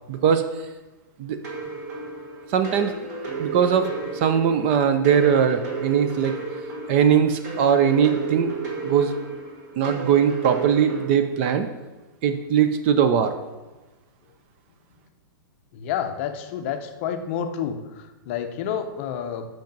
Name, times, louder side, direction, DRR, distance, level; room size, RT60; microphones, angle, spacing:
voice 1, 0.1-0.4 1.2-1.4 2.5-2.9 3.4-3.9 4.1-6.3 6.9-8.5 8.8-9.2 9.8-11.7 12.2-13.3, right 8 dB, 30° right, 9 dB, 0.4 m, -20 dB
sound 1, 1.4-11.0, right 4 dB, 50° right, 2.0 m, -33 dB
voice 2, 15.7-19.5, left 8 dB, 35° left, 7 dB, 0.6 m, -29 dB
5.8 x 5.2 x 5.2 m, 1.1 s
hypercardioid pair, 160°, 12 cm